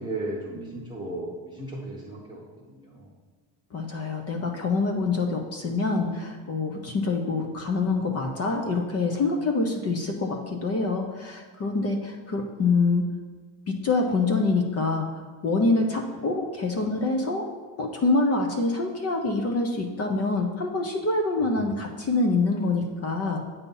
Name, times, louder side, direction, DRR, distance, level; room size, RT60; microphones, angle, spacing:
voice 1, 0.0-3.1 21.4-21.7, right 2 dB, 10° right, -7 dB, 0.8 m, -36 dB
voice 2, 3.7-13.0 13.7-15.1 15.4-17.5 17.8-23.5, left 3 dB, 30° left, 3 dB, 0.6 m, -25 dB
8.2 x 2.8 x 5.4 m, 1.4 s
cardioid pair, 135°, 48 cm